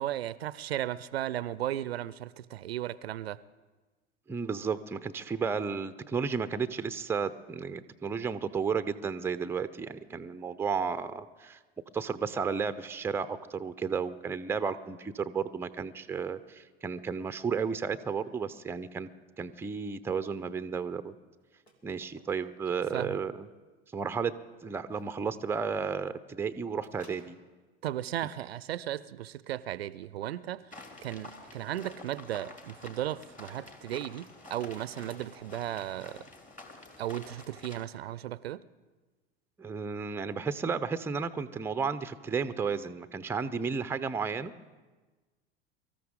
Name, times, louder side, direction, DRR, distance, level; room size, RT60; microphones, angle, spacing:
voice 1, 0.0-3.4 22.9-23.2 27.8-36.3 37.0-38.6, right 12 dB, 70° right, 20 dB, 0.5 m, -36 dB
voice 2, 4.3-11.6 11.9-19.1 19.4-21.1 21.8-23.5 23.9-24.3 24.6-27.4 39.6-44.5, right 5 dB, 5° right, 12 dB, 0.5 m, -33 dB
sound 1, 21.4-21.7 22.0-22.7 22.9-23.0 24.9-25.1 26.8-27.6 29.9-30.3 30.7-31.1 33.4-33.7 34.5-35.2, equal, 85° left, 2.2 m, -55 dB
sound 2, 30.7-37.9, left 2 dB, 25° left, 2.3 m, -49 dB
23.5 x 13.5 x 3.7 m, 1.3 s
figure-of-eight pair, 85°, 32 cm